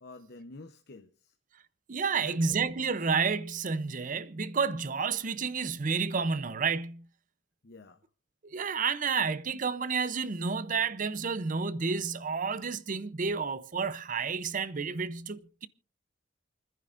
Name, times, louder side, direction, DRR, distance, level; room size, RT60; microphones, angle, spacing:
voice 1, 0.0-1.3 2.1-2.5 7.6-8.0, left 2 dB, 60° left, 0.9 m, -49 dB
voice 2, 1.9-7.1 8.4-15.7, right 5 dB, 45° right, 0.6 m, -30 dB
28.5 x 10.5 x 2.5 m
head